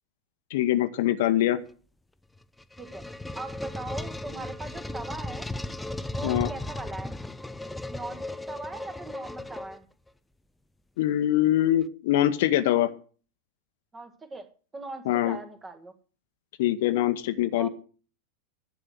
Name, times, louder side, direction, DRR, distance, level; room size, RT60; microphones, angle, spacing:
voice 1, 0.5-1.6 6.2-6.5 11.0-12.9 15.0-15.4 16.6-17.7, left 13 dB, 50° left, 11 dB, 0.9 m, -23 dB
sound 1, 2.4-10.1, left 2 dB, 5° left, 0.5 m, -36 dB
voice 2, 3.3-5.5 6.0-7.1 7.9-8.2 8.5-9.8 13.9-15.9 17.5-17.7, right 2 dB, 15° right, 8 dB, 1.7 m, -40 dB
11.0 x 7.6 x 7.8 m, 0.39 s
figure-of-eight pair, 90°, 0 cm